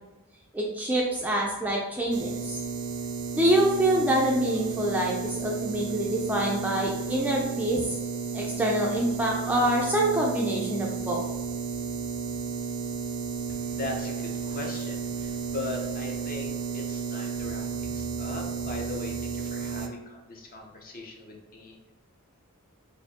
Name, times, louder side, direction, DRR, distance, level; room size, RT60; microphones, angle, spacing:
voice 1, 0.5-2.6 3.3-7.8 8.3-11.2, right 1 dB, 5° right, -3 dB, 0.3 m, -26 dB
sound 1, 2.1-19.9, right 5 dB, 75° right, 0.5 m, -33 dB
voice 2, 13.5-21.9, left 2 dB, 40° left, 0 dB, 0.6 m, -39 dB
4.2 x 2.5 x 2.8 m, 1.1 s
head